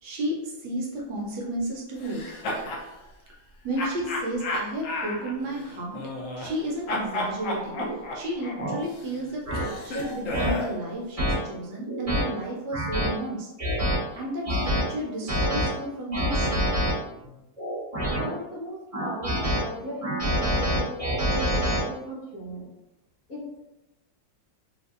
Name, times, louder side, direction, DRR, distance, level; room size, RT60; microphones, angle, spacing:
voice 1, 0.0-2.2 3.6-6.0 6.4-13.9 14.1-16.7, right 1 dB, 70° right, -2 dB, 1.2 m, -32 dB
sound 1, 2.0-2.9 3.8-6.6 6.9-10.8, left 1 dB, 90° left, 0.7 m, -33 dB
sound 2, 7.8-7.9 8.6-8.8 9.5-9.6 10.3-10.5 11.2-11.3 11.9-12.2 12.7-13.1 13.6-14.0 14.4-14.8 15.3-15.7 16.1-16.9 17.6-18.3 18.9-19.6 20.0-21.8, equal, 25° right, 1.0 m, -26 dB
voice 2, 18.0-22.7 23.3-23.4, right 1 dB, 55° left, -6 dB, 1.1 m, -37 dB
3.9 x 2.6 x 2.4 m, 1.0 s
omnidirectional pair, 2.1 m